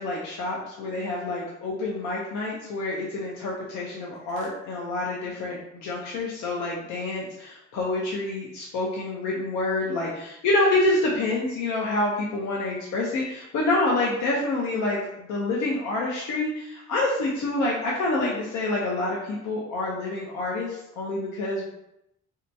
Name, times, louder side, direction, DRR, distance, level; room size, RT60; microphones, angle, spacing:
voice 1, 0.0-21.7, left 2 dB, 80° left, -3 dB, 0.6 m, -27 dB
2.7 x 2.2 x 2.6 m, 0.82 s
cardioid pair, 90°, 30 cm